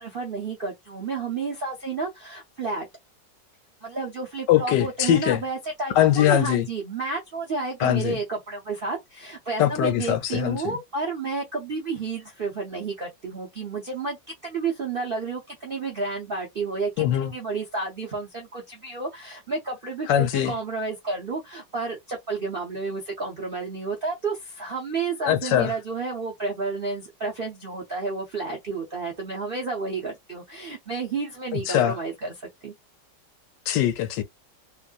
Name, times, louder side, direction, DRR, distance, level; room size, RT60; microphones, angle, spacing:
voice 1, 0.0-2.9 3.8-14.2 14.4-32.3 32.6-32.7, right 4 dB, 55° right, 0.6 m, -31 dB
voice 2, 4.5-5.4 6.0-6.7 7.8-8.2 9.6-10.7 17.0-17.3 20.1-20.5 25.2-25.7 31.5-31.9 33.7-34.2, left 11 dB, 80° left, 1.2 m, -22 dB
3.1 x 2.6 x 2.3 m
omnidirectional pair, 2.0 m